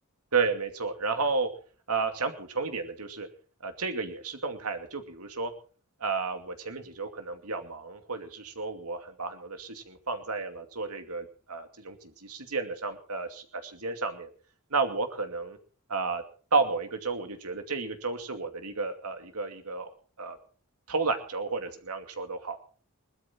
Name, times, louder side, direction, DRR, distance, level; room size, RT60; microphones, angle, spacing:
voice 1, 0.3-1.5 1.9-3.3 3.6-5.5 6.0-14.3 14.7-15.6 15.9-16.2 16.5-19.9 20.2-20.4 20.9-22.6, right 4 dB, 80° right, 6 dB, 2.5 m, -32 dB
20.5 x 12.5 x 4.4 m, 0.41 s
head